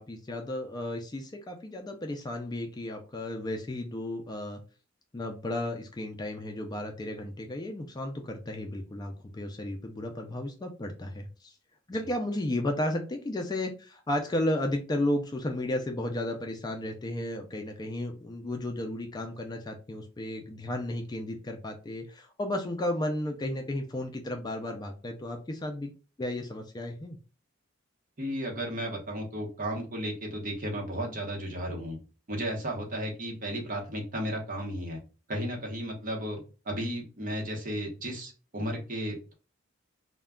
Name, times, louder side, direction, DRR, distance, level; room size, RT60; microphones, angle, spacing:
voice 1, 0.0-4.6 5.1-11.5 11.9-25.9 26.2-27.2, left 1 dB, 20° left, 4 dB, 0.3 m, -33 dB
voice 2, 28.2-32.0 32.3-35.0 35.3-39.3, equal, 45° right, 0 dB, 0.9 m, -34 dB
2.3 x 2.1 x 3.5 m, 0.34 s
head